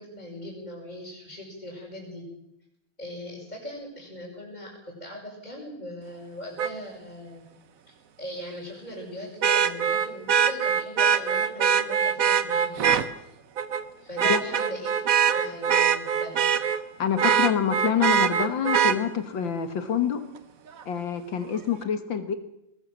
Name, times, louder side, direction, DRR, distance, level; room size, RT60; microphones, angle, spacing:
voice 1, 0.0-2.2 3.0-7.4 7.9-13.0 14.0-15.0 15.3-16.5, equal, 20° left, -6 dB, 6.0 m, -39 dB
Vehicle horn car horn honking, 6.6-6.7 9.4-13.0 13.6-13.8 14.2-16.8 17.2-19.0 20.8-20.9, right 8 dB, 50° right, 1.2 m, -22 dB
voice 2, 17.0-20.2 20.9-22.3, left 8 dB, 65° left, 9 dB, 2.2 m, -26 dB
20.5 x 19.0 x 7.6 m, 0.84 s
omnidirectional pair, 2.3 m